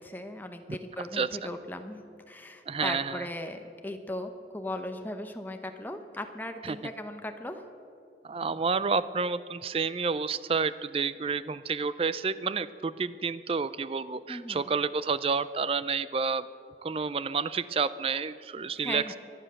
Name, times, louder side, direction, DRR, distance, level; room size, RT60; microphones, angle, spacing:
voice 1, 0.0-7.6 14.3-14.7 18.8-19.2, left 1 dB, 10° left, 6 dB, 0.9 m, -38 dB
voice 2, 2.7-3.3 6.6-6.8 8.2-16.5 16.8-19.2, right 5 dB, 30° right, 15 dB, 0.4 m, -30 dB
24.0 x 9.1 x 6.5 m, 2.6 s
head